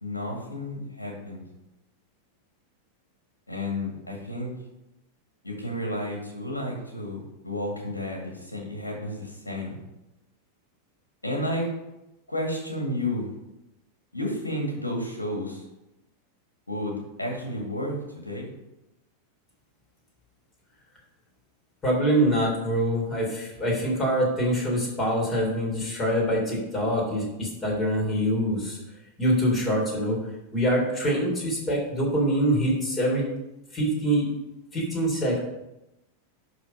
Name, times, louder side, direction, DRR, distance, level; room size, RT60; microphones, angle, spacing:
voice 1, 0.0-1.4 3.5-4.5 5.4-9.8 11.2-11.7 12.3-13.3 14.1-15.6 16.7-18.5, left 1 dB, 80° left, 1 dB, 2.0 m, -31 dB
voice 2, 21.8-28.8 29.2-30.2 30.5-33.3 33.7-34.3 34.7-35.4, equal, 20° left, -3 dB, 3.7 m, -24 dB
11.5 x 4.1 x 5.3 m, 0.92 s
figure-of-eight pair, 90°, 0 cm